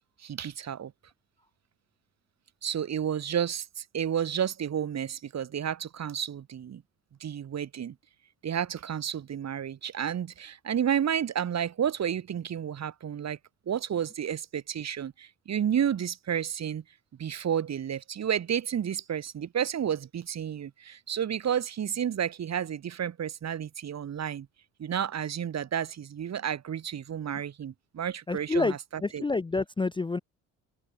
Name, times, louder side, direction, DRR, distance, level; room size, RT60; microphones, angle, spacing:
voice 1, 0.2-0.9 2.6-6.8 7.2-7.9 8.4-13.4 13.7-16.8 17.2-24.5 24.8-28.8 29.1-29.2, right 9 dB, 40° right, 1.1 m, -31 dB
voice 2, 28.3-30.2, left 3 dB, 10° left, 0.5 m, -28 dB
hypercardioid pair, 50°, 41 cm